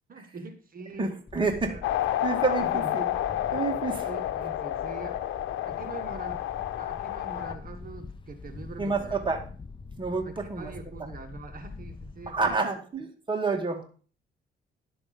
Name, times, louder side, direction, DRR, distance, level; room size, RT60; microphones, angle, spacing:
voice 1, 0.1-1.1 1.6-1.8 2.6-3.1 4.0-5.2 5.6-6.5 6.8-9.2 10.1-12.4, right 4 dB, 45° right, 7 dB, 1.4 m, -43 dB
voice 2, 1.0-1.7 2.2-3.1 3.5-4.1 8.8-9.4 10.0-10.7 12.3-13.9, right 4 dB, 25° right, 3 dB, 2.1 m, -29 dB
Wind, 1.3-12.6, left 4 dB, 25° left, 0.8 m, -45 dB
sound 1, 1.8-7.5, left 13 dB, 85° left, 0.9 m, -30 dB
11.0 x 7.0 x 5.2 m, 0.40 s
cardioid pair, 90°, 20 cm